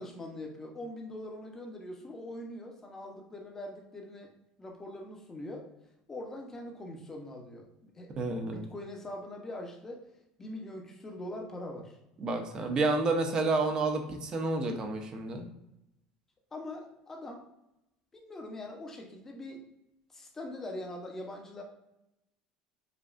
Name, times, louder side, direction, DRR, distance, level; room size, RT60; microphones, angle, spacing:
voice 1, 0.0-4.3 4.6-5.7 6.1-8.1 8.4-10.0 10.4-12.0 12.7-12.9 16.5-17.5 18.1-19.7 20.1-21.6, left 1 dB, 20° left, 1 dB, 0.8 m, -42 dB
voice 2, 8.2-8.6 12.2-15.5, right 3 dB, 35° right, 5 dB, 0.6 m, -30 dB
5.0 x 2.3 x 2.4 m, 0.88 s
cardioid pair, 130°, 2 cm